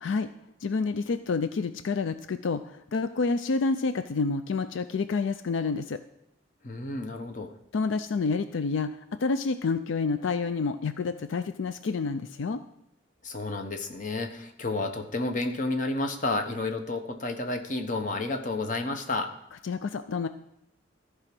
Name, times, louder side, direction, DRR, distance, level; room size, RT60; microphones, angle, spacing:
voice 1, 0.6-6.0 7.7-12.6 19.6-20.3, left 4 dB, 80° left, 10 dB, 0.4 m, -28 dB
voice 2, 6.6-7.5 13.2-19.3, left 2 dB, 40° left, 6 dB, 1.0 m, -31 dB
14.0 x 4.9 x 6.0 m, 0.79 s
head